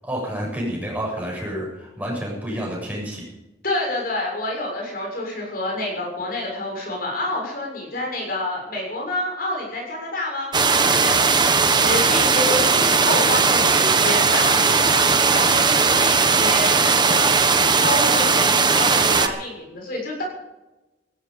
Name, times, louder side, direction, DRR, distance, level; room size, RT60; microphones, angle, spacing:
voice 1, 0.0-3.3, equal, 10° right, -3 dB, 7.6 m, -29 dB
voice 2, 3.6-10.5 10.9-15.0 15.3-17.4 17.8-20.2, left 2 dB, 50° left, -1 dB, 6.8 m, -28 dB
sound 1, 10.5-19.3, right 4 dB, 25° right, 1.2 m, -18 dB
17.0 x 14.0 x 5.3 m, 1.0 s
head